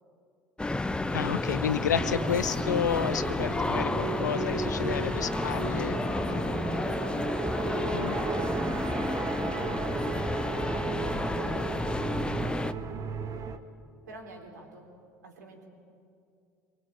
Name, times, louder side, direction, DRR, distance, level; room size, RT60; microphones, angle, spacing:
sound 1, 0.6-12.7, left 2 dB, 10° left, 1.0 m, -31 dB
voice 1, 1.1-6.0 7.9-8.2, left 8 dB, 75° left, 15 dB, 0.9 m, -31 dB
sound 2, 1.3-12.0, left 4 dB, 30° left, 2.5 m, -43 dB
sound 3, 1.9-13.6, right 6 dB, 35° right, 1.8 m, -35 dB
voice 2, 4.6-12.6 14.1-15.7, right 3 dB, 75° right, 2 dB, 4.3 m, -47 dB
26.5 x 23.0 x 8.8 m, 2.4 s
figure-of-eight pair, 70°, 9 cm